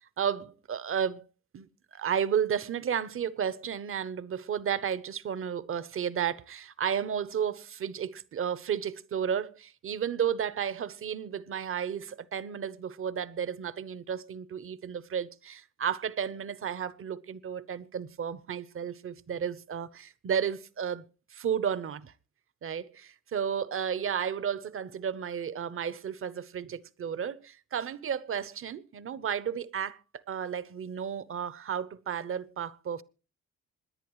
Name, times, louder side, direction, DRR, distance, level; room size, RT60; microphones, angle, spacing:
voice 1, 0.2-1.2 1.5-1.7 1.9-21.0 21.3-22.1 22.6-33.0, right 8 dB, 45° right, 0.8 m, -33 dB
27.0 x 10.5 x 3.1 m
cardioid pair, 90°, 30 cm